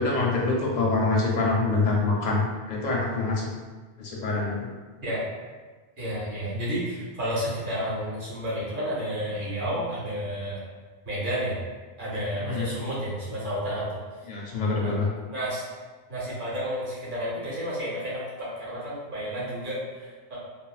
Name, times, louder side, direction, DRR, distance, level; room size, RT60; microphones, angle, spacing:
voice 1, 0.0-3.5 4.0-4.7 12.4-12.7 14.3-15.1, left 3 dB, 55° left, -2 dB, 0.5 m, -25 dB
voice 2, 6.0-10.6 11.1-11.6 12.0-14.0 14.8-15.0 15.3-15.6 16.1-20.4, equal, 55° right, -7 dB, 1.2 m, -31 dB
3.4 x 2.1 x 2.3 m, 1.4 s
omnidirectional pair, 1.1 m